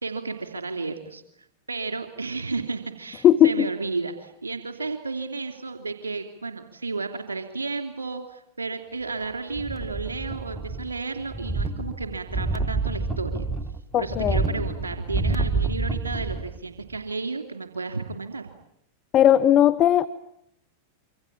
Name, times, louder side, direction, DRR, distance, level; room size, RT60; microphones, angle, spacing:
voice 1, 0.0-1.2 1.7-13.5 14.0-18.5, right 3 dB, 75° right, 7 dB, 3.1 m, -32 dB
voice 2, 3.2-3.7 13.9-14.4 19.1-20.1, left 11 dB, 35° left, 9 dB, 1.0 m, -17 dB
sound 1, 9.5-11.0 11.3-16.6 16.9-17.0, right 3 dB, 20° right, 1.9 m, -28 dB
27.5 x 25.0 x 8.8 m, 0.76 s
figure-of-eight pair, 90°, 0 cm